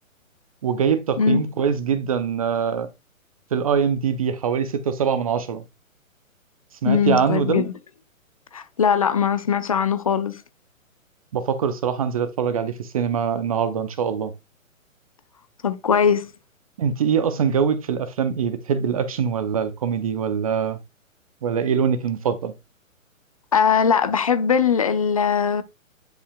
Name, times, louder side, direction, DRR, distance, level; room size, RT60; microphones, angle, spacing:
voice 1, 0.6-2.9 3.5-5.6 6.8-7.7 11.3-14.3 16.8-20.8 21.4-22.5, right 7 dB, 25° right, 0.6 m, -23 dB
voice 2, 6.8-7.7 8.5-10.4 15.6-16.3 23.5-25.6, left 7 dB, 25° left, 0.5 m, -20 dB
10.0 x 5.5 x 2.3 m
figure-of-eight pair, 135°, 41 cm